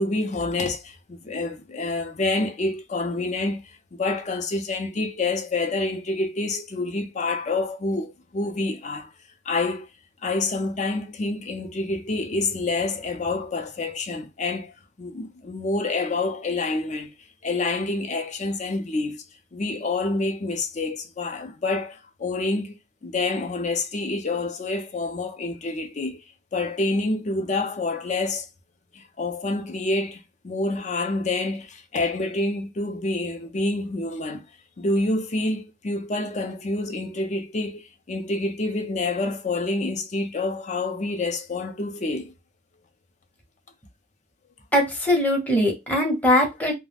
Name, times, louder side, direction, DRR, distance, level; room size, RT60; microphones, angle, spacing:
voice 1, 0.0-9.1 9.5-9.9 10.2-14.7 15.0-17.1 17.4-19.2 19.5-26.2 26.5-28.5 28.9-34.4 34.8-42.3, left 2 dB, 35° left, 0.5 m, -27 dB
voice 2, 44.7-46.7, left 1 dB, 10° left, 0.8 m, -21 dB
2.3 x 2.1 x 3.3 m
head